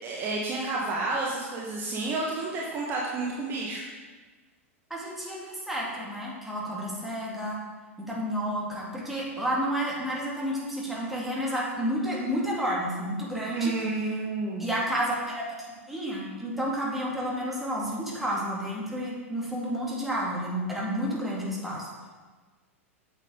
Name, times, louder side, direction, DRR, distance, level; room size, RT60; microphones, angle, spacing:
voice 1, 0.0-3.8 13.5-14.8, right 3 dB, 30° right, -3 dB, 1.3 m, -30 dB
voice 2, 4.9-7.6 8.0-13.7 14.6-22.1, equal, ahead, -5 dB, 2.2 m, -31 dB
8.1 x 7.4 x 3.9 m, 1.4 s
figure-of-eight pair, 95°, 8 cm